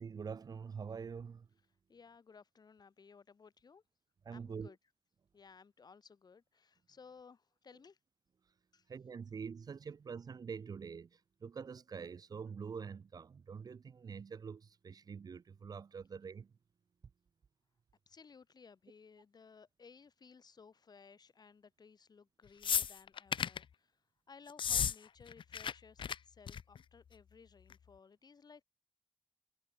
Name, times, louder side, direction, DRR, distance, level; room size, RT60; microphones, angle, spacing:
voice 1, 0.0-1.5 4.3-4.7 8.9-11.1 11.4-16.5, right 6 dB, 50° right, 0.5 m, -45 dB
voice 2, 1.9-3.8 4.3-4.8 5.3-8.0 8.7-8.9 18.1-24.0 24.3-28.6, left 5 dB, 50° left, 3.2 m, -59 dB
sound 1, 22.6-23.6 24.5-24.9 25.2-25.7 26.0-26.1 26.5-26.8 27.7-27.8, left 7 dB, 70° left, 0.7 m, -33 dB
wide cardioid pair, 150°, 9 cm